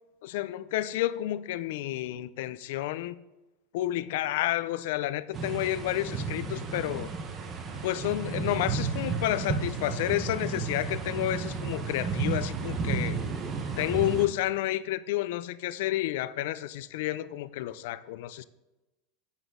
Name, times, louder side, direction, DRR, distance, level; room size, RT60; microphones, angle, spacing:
voice 1, 0.2-3.1 3.7-7.1 7.8-13.2 13.8-18.4, left 14 dB, 70° left, 0.4 m, -30 dB
sound 1, 5.3-14.3, right 5 dB, 25° right, 1.1 m, -32 dB
8.0 x 7.2 x 3.8 m
supercardioid pair, 140°, 0 cm